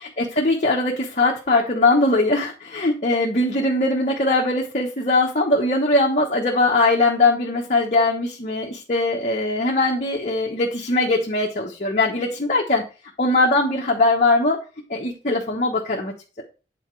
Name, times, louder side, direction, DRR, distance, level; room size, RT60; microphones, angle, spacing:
voice 1, 0.0-12.8 13.2-14.6 14.9-16.4, left 2 dB, 40° left, -2 dB, 1.1 m, -21 dB
8.9 x 4.2 x 4.6 m, 0.33 s
head